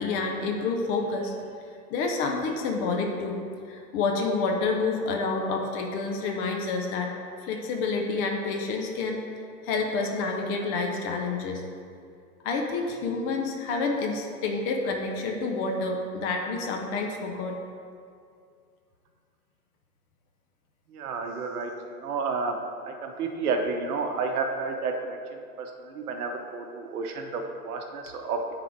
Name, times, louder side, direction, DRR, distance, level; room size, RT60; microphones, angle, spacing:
voice 1, 0.0-1.3 1.9-3.4 3.7-7.1 7.4-9.2 9.6-11.6 12.4-17.6, left 3 dB, 25° left, 2 dB, 0.7 m, -28 dB
voice 2, 20.9-22.6 22.8-28.4, right 4 dB, 65° right, 4 dB, 1.1 m, -31 dB
9.8 x 3.9 x 4.5 m, 2.3 s
hypercardioid pair, 130°, 48 cm